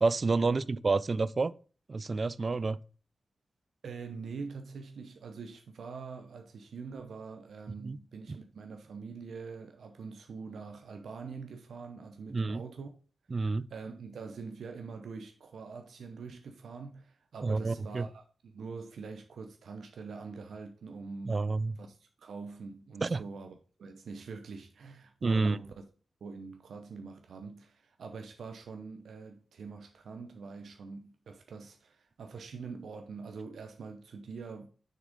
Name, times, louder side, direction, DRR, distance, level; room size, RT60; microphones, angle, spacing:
voice 1, 0.0-1.5 1.9-2.8 7.8-8.0 12.3-12.6 13.3-13.7 17.4-18.1 21.3-21.7 23.0-23.2 25.2-25.6, right 3 dB, 45° right, 0.4 m, -29 dB
voice 2, 3.8-12.9 13.7-21.4 21.8-25.7 26.2-34.7, right 4 dB, 85° right, 0.6 m, -44 dB
6.6 x 3.6 x 5.1 m
cardioid pair, 65°, 0 cm